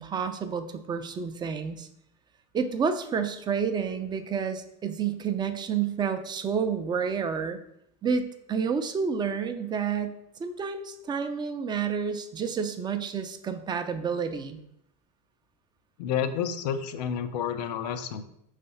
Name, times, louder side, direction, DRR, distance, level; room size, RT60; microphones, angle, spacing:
voice 1, 0.0-1.9 2.5-7.6 8.0-14.6, right 6 dB, 20° right, 8 dB, 0.5 m, -30 dB
voice 2, 16.0-18.2, left 8 dB, 75° left, 9 dB, 0.6 m, -30 dB
5.4 x 3.3 x 5.5 m, 0.78 s
supercardioid pair, 120°, 21 cm